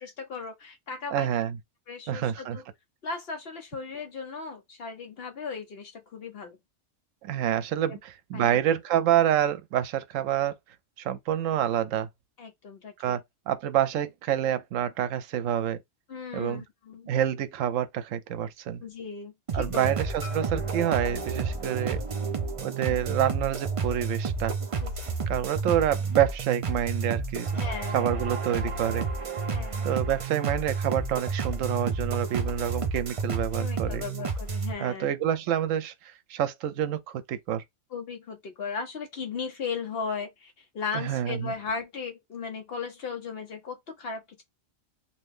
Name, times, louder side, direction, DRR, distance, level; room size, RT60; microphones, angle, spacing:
voice 1, 0.0-1.3 1.9-2.6 3.0-6.6 7.9-8.0 8.3-8.5 12.4-13.2 16.1-17.1 18.8-20.0 22.8-23.0 24.8-25.1 27.5-28.1 29.5-29.9 33.6-35.1 37.9-44.4, left 5 dB, 60° left, 0.8 m, -37 dB
voice 2, 1.1-1.6 2.1-2.6 7.2-10.5 11.0-12.1 13.0-15.8 16.3-16.6 17.1-18.8 19.5-22.0 22.6-24.6 25.3-27.6 27.9-29.0 29.8-34.0 34.8-35.9 36.3-37.6 40.9-41.5, right 10 dB, 80° right, 0.9 m, -27 dB
sound 1, 19.5-34.7, right 4 dB, 50° right, 0.4 m, -31 dB
Marimba xylophone, 20.2-24.4, left 5 dB, 10° left, 1.0 m, -53 dB
2.7 x 2.3 x 3.5 m
omnidirectional pair, 1.3 m